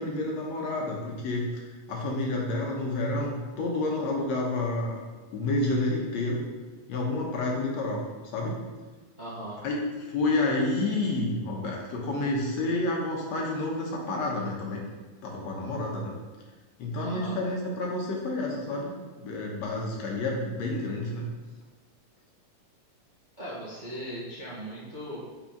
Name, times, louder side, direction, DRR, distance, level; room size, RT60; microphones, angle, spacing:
voice 1, 0.0-5.0 5.3-6.4 6.9-8.0 8.3-8.6 9.6-14.8 15.2-16.2 16.8-21.2, left 2 dB, 70° left, -2 dB, 2.3 m, -29 dB
voice 2, 9.2-9.6 17.0-17.4 23.4-25.2, equal, 25° right, -8 dB, 1.0 m, -38 dB
5.8 x 5.6 x 5.1 m, 1.3 s
omnidirectional pair, 3.4 m